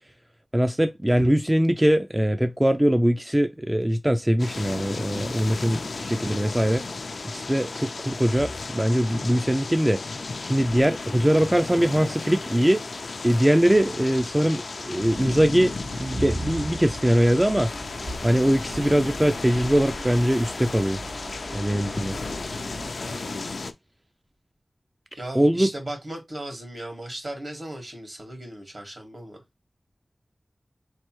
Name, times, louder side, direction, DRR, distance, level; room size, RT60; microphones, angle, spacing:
voice 1, 0.5-6.8 7.2-10.0 10.4-12.8 13.2-17.7 18.2-21.0 21.5-22.2 25.3-25.7, equal, 15° right, 0.3 m, -22 dB
sound 1, 4.4-23.7, left 3 dB, 85° left, 0.4 m, -34 dB
sound 2, 15.1-22.9, right 1 dB, 85° right, 1.4 m, -37 dB
voice 2, 21.9-22.6 23.0-23.7 25.1-29.4, right 1 dB, 55° right, 1.6 m, -37 dB
4.0 x 3.3 x 3.0 m
wide cardioid pair, 65°, 0 cm